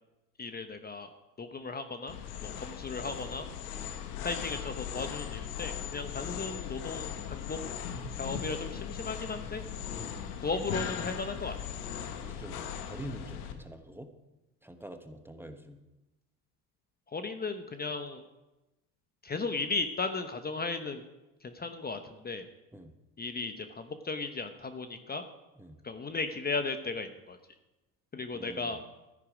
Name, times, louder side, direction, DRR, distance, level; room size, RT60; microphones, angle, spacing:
voice 1, 0.4-1.1 1.4-2.2 2.4-3.5 4.2-7.6 8.1-9.6 10.4-11.5 17.1-18.2 19.2-21.0 21.4-22.5 23.2-25.2 25.8-27.4 28.1-28.8, left 4 dB, 20° left, 8 dB, 1.0 m, -36 dB
sound 1, 2.1-13.5, left 8 dB, 80° left, 1.4 m, -38 dB
voice 2, 12.0-14.1 14.6-15.8 22.7-22.9 25.6-25.8 28.3-28.8, right 1 dB, 5° right, 7 dB, 1.1 m, -45 dB
13.5 x 10.0 x 5.0 m, 1.0 s
hypercardioid pair, 85°, 43 cm